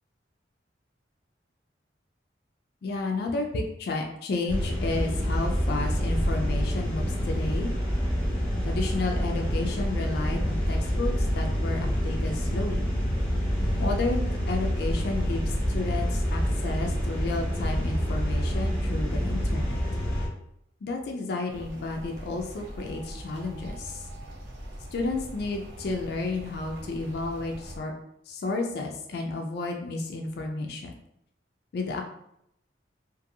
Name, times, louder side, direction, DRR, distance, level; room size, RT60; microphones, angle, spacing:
voice 1, 2.8-7.7 8.6-12.8 13.8-19.8 20.8-24.0 24.9-27.9 28.3-30.9 31.7-32.0, left 3 dB, 60° left, 2 dB, 0.4 m, -32 dB
sound 1, 4.5-20.3, equal, 5° left, 0.9 m, -27 dB
sound 2, 21.5-27.8, right 1 dB, 85° right, 0.6 m, -42 dB
2.6 x 2.5 x 2.6 m, 0.78 s
head